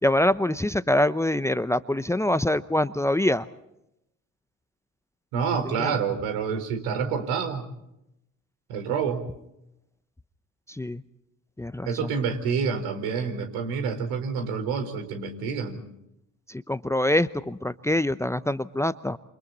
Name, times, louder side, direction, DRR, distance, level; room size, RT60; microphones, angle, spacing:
voice 1, 0.0-3.5 5.8-5.9 10.7-11.0 11.6-11.9 16.5-19.2, left 1 dB, 5° left, 15 dB, 0.9 m, -24 dB
voice 2, 5.3-7.7 8.7-9.3 11.9-15.8, right 6 dB, 75° right, 7 dB, 4.5 m, -28 dB
28.5 x 27.5 x 4.1 m, 0.84 s
hypercardioid pair, 60°, 37 cm